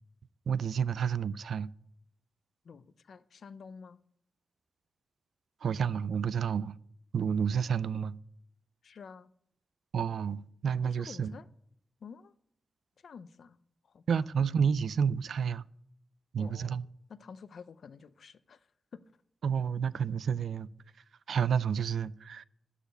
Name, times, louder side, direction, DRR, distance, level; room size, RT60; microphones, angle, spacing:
voice 1, 0.5-1.7 5.6-6.7 7.1-8.1 9.9-11.3 14.1-15.6 16.3-16.8 19.4-20.7 21.3-22.4, right 7 dB, 90° right, 0.3 m, -30 dB
voice 2, 2.6-4.0 8.8-9.3 10.8-11.5 12.0-12.3 13.0-13.6 13.9-14.3 16.4-16.8 17.1-19.0, left 6 dB, 70° left, 0.5 m, -50 dB
13.0 x 4.9 x 9.0 m
wide cardioid pair, 150°, 0 cm